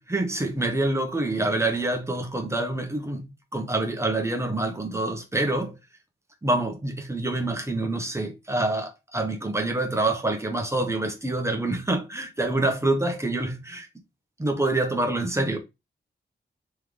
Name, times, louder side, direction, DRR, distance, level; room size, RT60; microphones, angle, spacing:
voice 1, 0.1-3.3 3.5-5.8 6.4-13.9 14.4-15.6, right 2 dB, 15° right, 1.0 m, -26 dB
3.3 x 3.3 x 3.6 m
wide cardioid pair, 105°, 20 cm